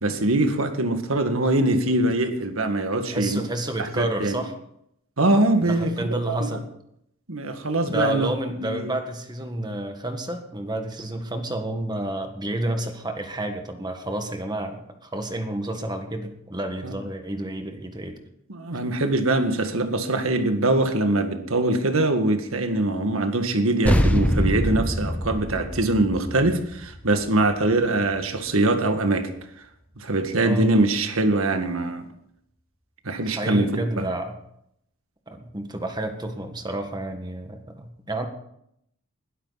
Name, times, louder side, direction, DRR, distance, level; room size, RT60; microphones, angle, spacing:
voice 1, 0.0-3.4 3.8-4.4 5.2-6.6 7.3-9.0 16.8-16.9 18.5-29.3 30.0-32.1 33.1-34.1, right 2 dB, 85° right, 7 dB, 1.9 m, -23 dB
voice 2, 3.0-4.5 5.6-6.7 7.8-18.2 30.4-30.7 33.2-34.3 35.3-38.3, right 1 dB, 20° right, 5 dB, 1.6 m, -30 dB
sound 1, 23.9-28.6, equal, 5° left, 1.1 m, -25 dB
20.5 x 13.0 x 4.1 m, 0.74 s
head